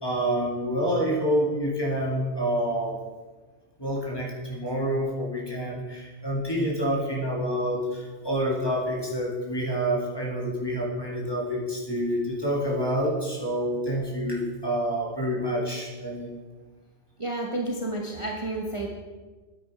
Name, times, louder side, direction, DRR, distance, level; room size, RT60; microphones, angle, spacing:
voice 1, 0.0-3.0 3.8-16.3, equal, 20° left, -3 dB, 2.2 m, -27 dB
voice 2, 17.2-18.9, right 2 dB, 30° right, -1 dB, 1.0 m, -30 dB
9.5 x 9.0 x 4.8 m, 1.3 s
omnidirectional pair, 1.2 m